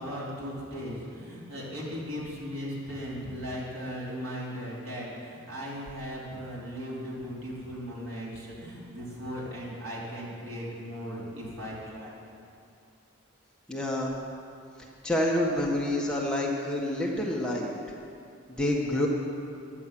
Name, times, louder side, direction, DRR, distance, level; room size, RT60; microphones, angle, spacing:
voice 1, 0.0-12.2, equal, 85° right, -5 dB, 4.5 m, -37 dB
voice 2, 13.7-14.1 15.0-17.7 18.5-19.1, left 1 dB, 5° left, -3 dB, 1.5 m, -28 dB
15.5 x 11.5 x 7.7 m, 2.6 s
head